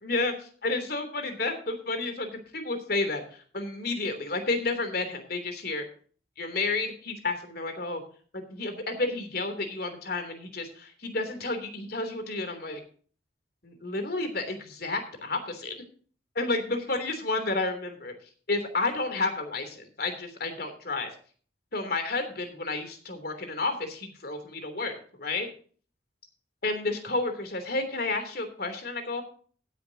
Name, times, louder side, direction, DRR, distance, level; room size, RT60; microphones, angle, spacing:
voice 1, 0.0-5.8 6.4-8.0 8.3-12.8 13.6-15.7 16.3-18.1 18.5-21.1 21.7-25.5 26.6-29.2, left 3 dB, 55° left, 8 dB, 3.2 m, -31 dB
16.0 x 10.5 x 2.8 m, 0.44 s
head